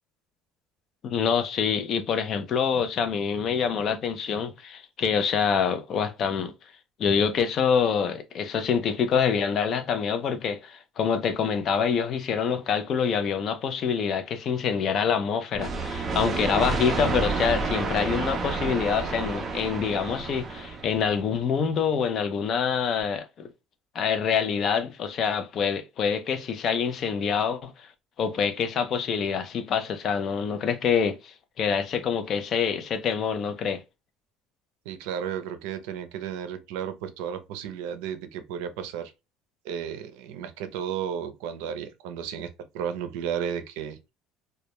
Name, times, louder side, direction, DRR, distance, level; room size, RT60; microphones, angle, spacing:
voice 1, 1.0-6.5 7.0-23.5 23.9-27.9 28.2-33.8, left 6 dB, 40° left, 0.4 m, -26 dB
sound 1, 15.5-21.2, right 3 dB, 25° right, 0.5 m, -30 dB
voice 2, 34.9-39.1 39.6-44.0, right 8 dB, 90° right, 0.4 m, -33 dB
2.1 x 2.0 x 2.8 m
cardioid pair, 145°, 0 cm